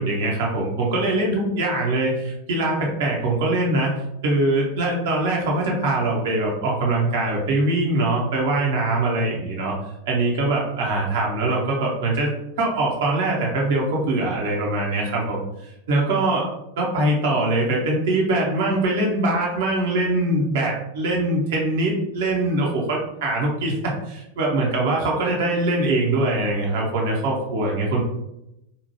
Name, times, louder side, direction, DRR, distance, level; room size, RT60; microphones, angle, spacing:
voice 1, 0.0-3.9 4.2-9.7 10.1-15.4 15.9-28.0, right 2 dB, 55° right, -2 dB, 0.6 m, -22 dB
2.7 x 2.1 x 2.9 m, 0.86 s
figure-of-eight pair, 90°, 0 cm